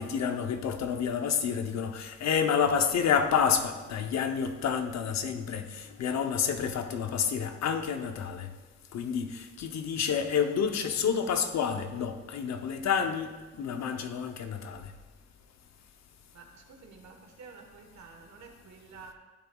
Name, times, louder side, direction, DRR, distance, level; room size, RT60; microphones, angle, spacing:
voice 1, 0.0-8.5 8.9-13.3 13.6-14.9, left 7 dB, 65° left, 0.8 m, -29 dB
voice 2, 16.3-19.1, right 5 dB, 65° right, 1.4 m, -50 dB
12.5 x 6.8 x 2.3 m
cardioid pair, 90°, 30 cm